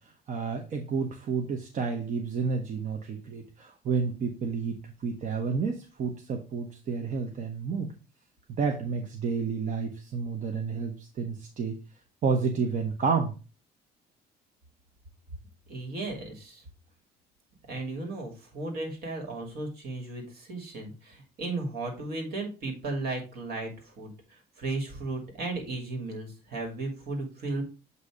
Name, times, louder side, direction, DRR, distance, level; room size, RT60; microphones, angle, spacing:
voice 1, 0.3-7.9 8.5-11.8 12.2-13.3, right 5 dB, 50° right, 4 dB, 0.9 m, -30 dB
voice 2, 15.7-16.6 17.7-24.1 24.6-27.6, right 2 dB, 65° right, 3 dB, 2.4 m, -35 dB
8.0 x 2.8 x 4.8 m, 0.33 s
cardioid pair, 110°, 17 cm